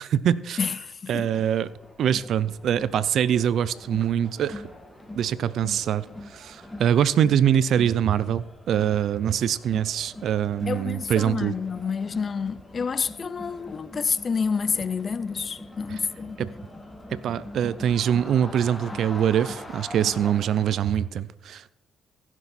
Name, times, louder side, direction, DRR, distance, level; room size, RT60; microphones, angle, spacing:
voice 1, 0.0-0.6 1.1-1.7 2.0-4.6 5.2-11.5 15.9-16.0 16.4-16.5 17.1-21.7, right 9 dB, 65° right, 0.5 m, -24 dB
voice 2, 0.6-1.3 10.7-16.4, left 5 dB, 40° left, 0.4 m, -29 dB
Crowd, 1.6-21.0, left 1 dB, 10° left, 2.1 m, -42 dB
15.5 x 7.0 x 4.3 m
supercardioid pair, 75°, 0 cm